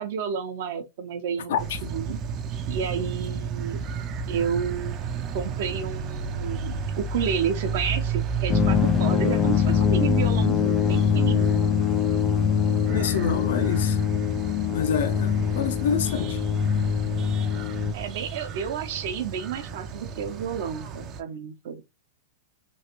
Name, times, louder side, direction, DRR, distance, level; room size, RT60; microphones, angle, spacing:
voice 1, 0.0-2.2 2.7-3.8 4.3-11.6 17.9-21.8, right 7 dB, 65° right, 0.7 m, -31 dB
sound 1, 1.6-21.2, right 5 dB, 35° right, 0.5 m, -33 dB
sound 2, 8.5-17.9, left 8 dB, 25° left, 0.3 m, -23 dB
voice 2, 12.9-14.0 14.7-16.4, left 7 dB, 75° left, 0.6 m, -27 dB
3.1 x 2.5 x 2.9 m
hypercardioid pair, 120°, 0 cm